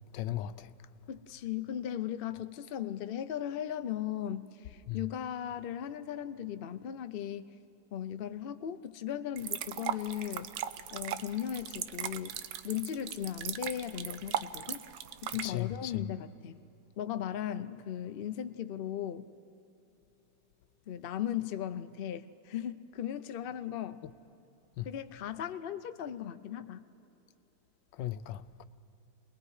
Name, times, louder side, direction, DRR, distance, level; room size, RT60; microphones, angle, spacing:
voice 1, 0.1-0.7 4.9-5.0 15.4-16.0 24.0-24.1 24.8-24.9 27.9-28.7, left 13 dB, 85° left, 1.3 m, -37 dB
voice 2, 1.1-7.4 7.9-10.5 10.9-14.8 15.2-16.6 17.0-19.2 20.9-24.0 24.8-26.8, left 10 dB, 65° left, 0.5 m, -37 dB
sound 1, 9.4-15.5, right 10 dB, 90° right, 1.3 m, -38 dB
30.0 x 20.5 x 4.9 m
omnidirectional pair, 1.9 m